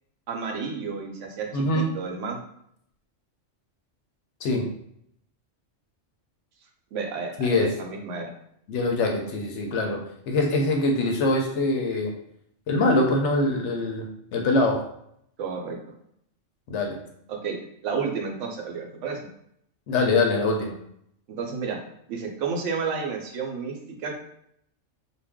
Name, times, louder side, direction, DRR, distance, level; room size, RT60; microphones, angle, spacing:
voice 1, 0.3-2.4 6.9-8.3 15.4-15.8 17.3-17.6 17.8-19.3 21.3-21.8 22.1-24.1, right 5 dB, 75° right, 2 dB, 0.9 m, -31 dB
voice 2, 1.5-1.9 4.4-4.7 7.4-7.8 8.7-12.1 12.7-14.8 16.7-17.0 19.9-20.8, left 2 dB, 75° left, 2 dB, 0.9 m, -24 dB
2.5 x 2.1 x 3.4 m, 0.71 s
omnidirectional pair, 1.3 m